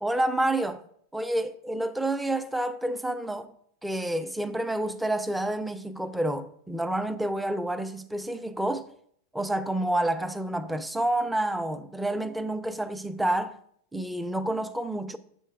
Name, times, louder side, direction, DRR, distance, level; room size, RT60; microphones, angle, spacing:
voice 1, 0.0-0.8 1.1-3.5 3.8-8.9 9.3-13.6 13.9-15.2, right 1 dB, 5° right, 0.4 m, -29 dB
7.6 x 3.1 x 4.6 m
hypercardioid pair, 120°, 0 cm